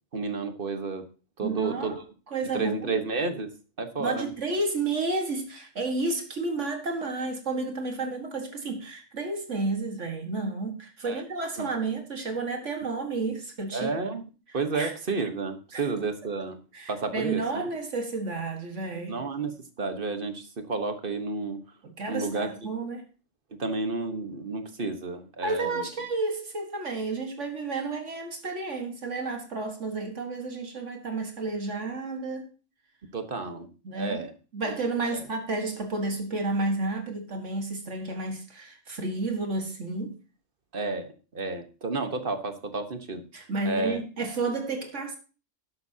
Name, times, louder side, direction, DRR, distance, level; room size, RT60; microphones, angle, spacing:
voice 1, 0.1-1.0 1.4-1.9 2.5-4.3 11.0-11.2 11.6-11.7 13.7-14.2 14.5-16.6 16.9-17.6 19.1-21.6 22.1-22.5 23.6-25.9 33.1-33.7 33.9-34.3 34.6-34.7 35.1-35.2 40.7-43.2 43.6-44.0, right 3 dB, 45° right, 1.4 m, -31 dB
voice 2, 1.4-2.0 2.3-3.0 4.0-13.9 14.7-14.9 15.7-15.8 16.7-19.2 21.8-23.0 25.4-32.5 33.8-34.2 34.5-40.1 43.3-45.2, right 3 dB, 70° right, 2.0 m, -31 dB
12.0 x 11.0 x 2.8 m
omnidirectional pair, 1.3 m